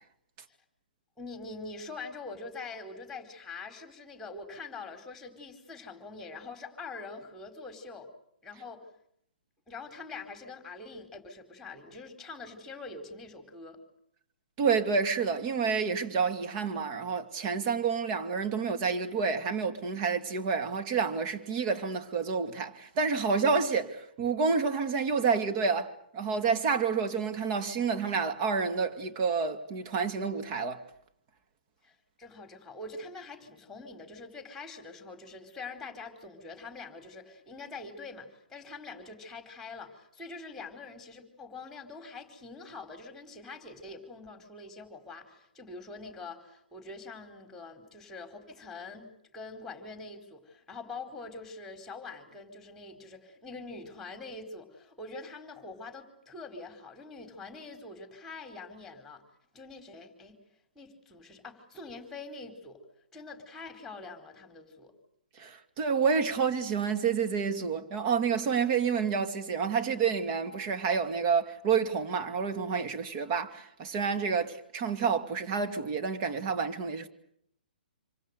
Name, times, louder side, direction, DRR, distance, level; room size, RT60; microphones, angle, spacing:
voice 1, 1.2-8.1 8.4-8.9 9.7-13.8 31.8-49.1 49.3-59.2 59.5-60.4 60.7-62.8 63.1-64.9, left 3 dB, 5° left, 4.7 m, -44 dB
voice 2, 14.6-30.8 65.4-77.1, right 5 dB, 35° right, 2.4 m, -29 dB
27.0 x 27.0 x 6.8 m
figure-of-eight pair, 125°, 5 cm